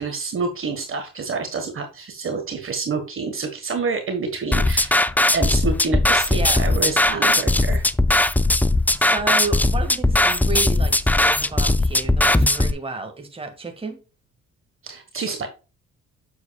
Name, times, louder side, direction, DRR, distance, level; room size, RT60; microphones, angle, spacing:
voice 1, 0.0-4.9 5.3-7.9 14.8-15.5, right 4 dB, 45° right, 1.5 m, -28 dB
sound 1, 4.5-12.7, left 2 dB, 5° left, 0.3 m, -19 dB
voice 2, 6.3-6.6 7.1-7.2 8.9-14.0, right 4 dB, 20° right, 1.9 m, -31 dB
8.2 x 7.2 x 2.3 m
cardioid pair, 90°, 30 cm